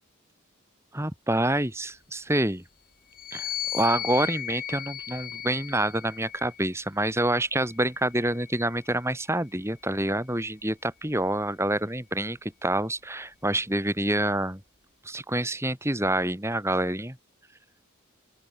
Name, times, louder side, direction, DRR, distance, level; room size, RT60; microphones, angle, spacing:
voice 1, 0.9-2.6 3.3-14.6 15.0-17.2, right 1 dB, 15° right, 4.6 m, -27 dB
sound 1, 3.1-6.7 7.5-9.1, left 11 dB, 45° left, 3.3 m, -36 dB
open air
head